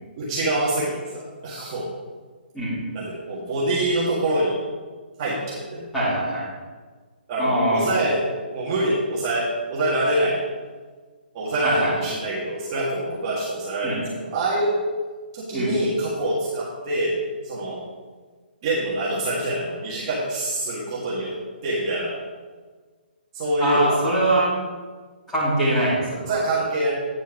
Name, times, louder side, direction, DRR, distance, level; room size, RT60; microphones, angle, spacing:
voice 1, 0.2-1.9 2.9-4.5 5.2-5.9 7.3-8.2 8.5-9.4 9.7-10.4 11.3-14.7 15.3-17.1 17.4-17.8 18.6-21.3 21.6-22.2 23.3-24.2 26.3-26.9, right 1 dB, 25° right, -7 dB, 1.6 m, -25 dB
voice 2, 5.9-6.5 7.4-7.9 11.6-11.9 13.8-14.0 15.5-15.7 23.6-24.6 25.3-26.4, right 1 dB, 5° left, -11 dB, 2.7 m, -23 dB
9.1 x 4.4 x 5.9 m, 1.4 s
hypercardioid pair, 165°, 6 cm